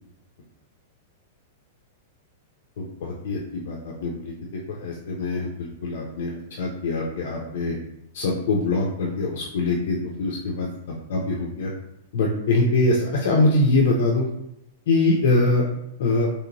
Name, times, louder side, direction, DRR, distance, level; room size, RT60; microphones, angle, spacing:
voice 1, 2.8-4.3 4.7-7.8 8.1-11.7 12.1-14.3 14.9-15.7 16.0-16.3, left 2 dB, 60° left, -1 dB, 0.4 m, -23 dB
3.3 x 2.8 x 2.6 m, 0.83 s
supercardioid pair, 170°, 0 cm